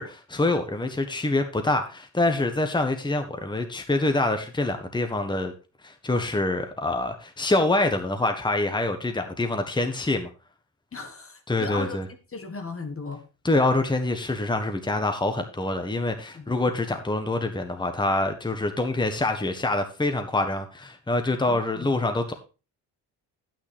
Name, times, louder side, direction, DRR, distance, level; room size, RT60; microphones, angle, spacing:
voice 1, 0.0-5.5 5.8-10.3 11.5-12.0 13.4-22.3, left 2 dB, 10° left, 1.4 m, -25 dB
voice 2, 10.9-12.0 12.3-13.2 16.3-16.5 21.5-21.9, left 3 dB, 30° left, 1.5 m, -36 dB
9.5 x 8.9 x 3.5 m
cardioid pair, 85°, 41 cm